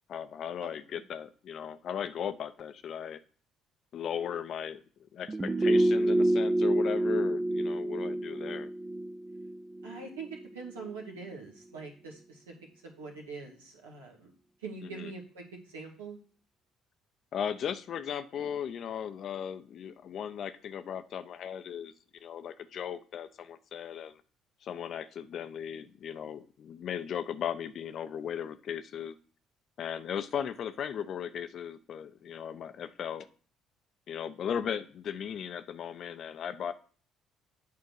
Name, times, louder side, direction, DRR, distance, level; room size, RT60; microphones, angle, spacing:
voice 1, 0.1-3.2 3.9-4.8 5.1-8.7 14.8-15.1 17.3-21.9 22.2-24.2 24.6-29.2 29.8-33.3 34.1-36.7, left 8 dB, 55° left, 12 dB, 0.6 m, -37 dB
sound 1, 5.3-10.5 10.8-10.9, right 1 dB, 25° right, 0.5 m, -28 dB
voice 2, 9.8-12.5 12.8-14.3 14.6-16.2, right 4 dB, 85° right, -1 dB, 1.7 m, -43 dB
8.5 x 3.7 x 6.4 m, 0.42 s
hypercardioid pair, 50°, 0 cm